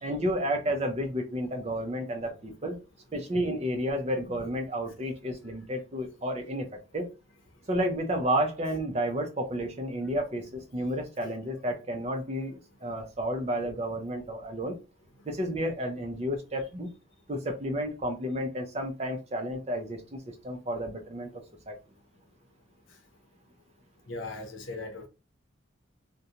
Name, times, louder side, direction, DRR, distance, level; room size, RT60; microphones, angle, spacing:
voice 1, 0.0-2.8 3.1-6.7 6.9-7.1 7.7-14.8 15.2-16.9 17.3-20.2 20.4-21.3 21.7-21.8, equal, 30° right, 0.5 m, -31 dB
voice 2, 24.1-25.1, left 3 dB, 70° left, 0.7 m, -38 dB
2.5 x 2.2 x 2.8 m
head